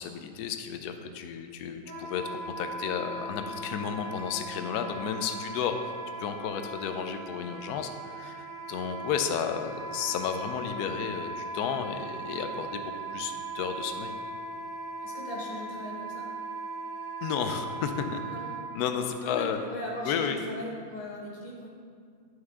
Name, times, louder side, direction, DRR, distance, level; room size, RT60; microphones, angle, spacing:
voice 1, 0.0-2.2 2.6-5.9 6.2-14.1 17.2-18.2 18.7-19.6 20.0-20.4, left 7 dB, 75° left, 7 dB, 0.9 m, -32 dB
Wind instrument woodwind instrument, 1.8-18.6, right 2 dB, 25° right, 1.9 m, -39 dB
voice 2, 15.0-16.3 18.3-18.5 19.2-21.7, left 1 dB, 25° left, -4 dB, 1.1 m, -38 dB
9.1 x 6.3 x 3.6 m, 2.1 s
omnidirectional pair, 2.2 m